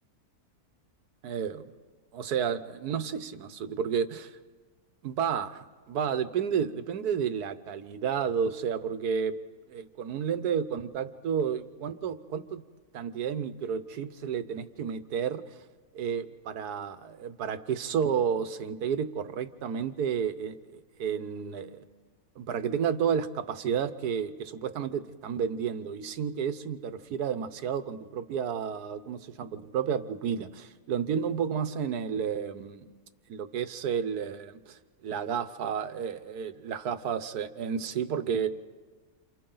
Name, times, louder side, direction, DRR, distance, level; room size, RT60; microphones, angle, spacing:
voice 1, 1.2-1.7 2.1-4.4 5.0-9.4 9.7-12.6 12.9-15.4 15.9-21.8 22.4-32.8 33.3-38.5, right 7 dB, 90° right, 11 dB, 1.5 m, -31 dB
28.5 x 28.5 x 3.9 m, 1.4 s
omnidirectional pair, 1.6 m